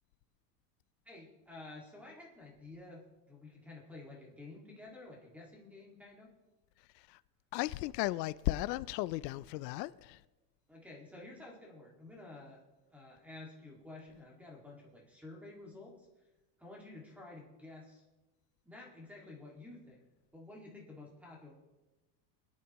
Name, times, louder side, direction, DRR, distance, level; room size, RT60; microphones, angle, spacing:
voice 1, 1.1-6.3 10.7-12.6 12.9-16.1 16.6-18.0 18.6-20.0 20.3-21.5, left 2 dB, 5° right, 2.0 m, -51 dB
voice 2, 7.5-10.2, left 17 dB, 80° left, 0.6 m, -35 dB
24.5 x 10.5 x 3.0 m
supercardioid pair, 175°, 49 cm